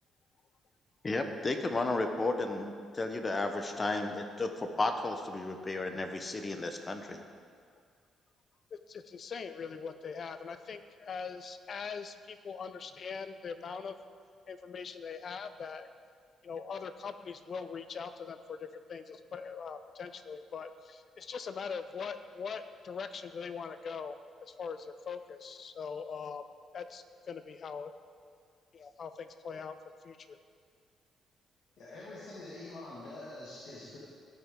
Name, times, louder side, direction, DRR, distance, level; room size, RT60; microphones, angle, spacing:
voice 1, 1.0-7.2, left 2 dB, 30° left, 6 dB, 1.0 m, -33 dB
voice 2, 8.7-14.0 14.5-15.9 16.4-26.4 26.7-27.9 28.7-29.8 30.0-30.4, left 5 dB, 50° left, 10 dB, 0.6 m, -41 dB
voice 3, 31.8-34.0, left 2 dB, 70° left, -7 dB, 2.3 m, -45 dB
17.0 x 5.8 x 3.8 m, 2.1 s
cardioid pair, 90°, 0 cm